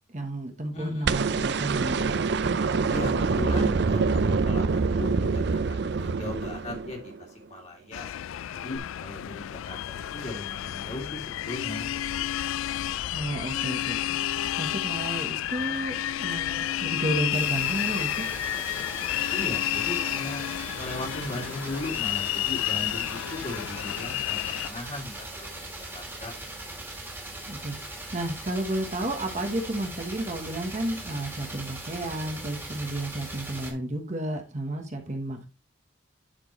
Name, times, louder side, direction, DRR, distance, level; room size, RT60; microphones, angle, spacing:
voice 1, 0.1-2.1 13.1-14.2 14.6-18.3 27.5-27.8 28.1-35.5, right 1 dB, 35° right, 1.2 m, -32 dB
voice 2, 0.7-1.2 2.9-8.1 8.5-12.3 19.3-20.5 20.7-25.5 25.9-26.3, left 1 dB, 35° left, 2.5 m, -37 dB
sound 1, 1.0-7.2 8.8-8.9, right 4 dB, 55° right, 0.4 m, -25 dB
sound 2, 7.9-24.7, left 12 dB, 80° left, 0.3 m, -31 dB
sound 3, 17.3-33.7, right 2 dB, 10° right, 2.1 m, -40 dB
11.0 x 4.6 x 3.1 m
head